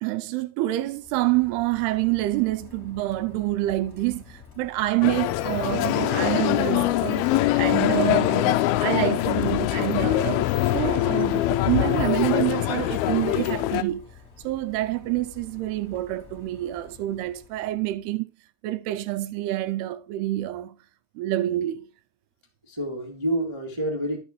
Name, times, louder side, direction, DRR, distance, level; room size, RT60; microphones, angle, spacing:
voice 1, 0.0-10.5 10.7-14.0 14.4-18.3 18.6-20.8 21.2-21.9, right 16 dB, 80° right, 2.4 m, -27 dB
Rain, 0.8-18.1, left 5 dB, 25° left, 2.4 m, -49 dB
sound 1, 5.0-13.8, left 15 dB, 90° left, 2.2 m, -23 dB
voice 2, 22.6-24.2, right 1 dB, 25° right, 0.6 m, -29 dB
12.5 x 6.5 x 3.1 m
omnidirectional pair, 5.0 m